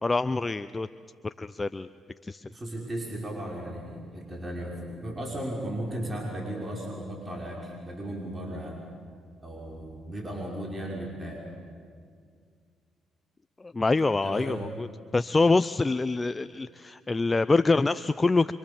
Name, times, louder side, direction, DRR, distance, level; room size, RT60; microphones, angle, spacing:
voice 1, 0.0-0.9 1.2-1.9 2.2-2.5 13.6-14.9 15.1-18.5, left 3 dB, 25° left, 13 dB, 0.6 m, -25 dB
voice 2, 2.5-8.8 9.4-11.4 14.2-14.6, right 1 dB, 25° right, -2 dB, 5.9 m, -36 dB
26.0 x 25.5 x 7.3 m, 2.1 s
supercardioid pair, 60°, 0 cm